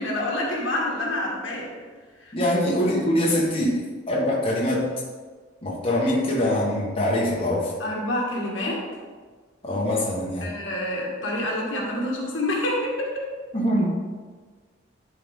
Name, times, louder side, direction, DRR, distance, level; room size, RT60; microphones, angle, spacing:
voice 1, 0.0-1.7 2.2-2.3 7.8-8.8 10.4-13.3, left 1 dB, 75° left, -2 dB, 1.8 m, -27 dB
voice 2, 2.3-4.9 5.6-7.7 9.6-10.5 13.5-13.9, left 1 dB, 30° left, -5 dB, 1.4 m, -23 dB
11.5 x 4.4 x 3.7 m, 1.5 s
head